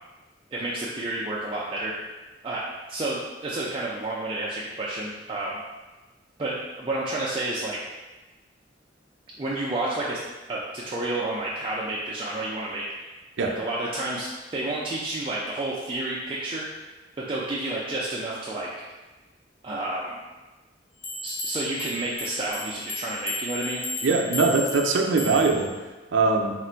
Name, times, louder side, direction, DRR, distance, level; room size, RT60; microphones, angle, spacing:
voice 1, 0.5-1.9 2.4-5.6 6.4-7.8 9.4-10.2 10.5-12.8 13.4-16.7 17.2-18.9 19.6-20.2 21.2-23.8, right 2 dB, 30° right, -6 dB, 0.4 m, -30 dB
sound 1, 21.0-25.7, left 2 dB, 40° left, 0.7 m, -34 dB
voice 2, 24.0-25.7 26.1-26.5, right 3 dB, 85° right, 3 dB, 0.5 m, -21 dB
3.7 x 2.5 x 4.3 m, 1.2 s
head